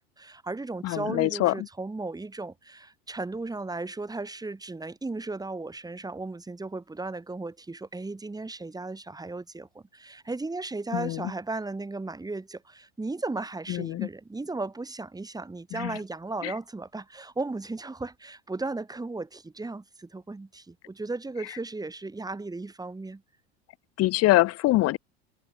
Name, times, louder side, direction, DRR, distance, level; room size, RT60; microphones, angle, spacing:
voice 1, 0.0-23.2, right 3 dB, 10° right, 2.8 m, -36 dB
voice 2, 0.8-1.7 10.9-11.3 13.7-14.1 15.7-16.0 16.4-16.5 24.0-25.0, left 18 dB, 50° left, 0.9 m, -24 dB
hypercardioid pair, 90°, 33 cm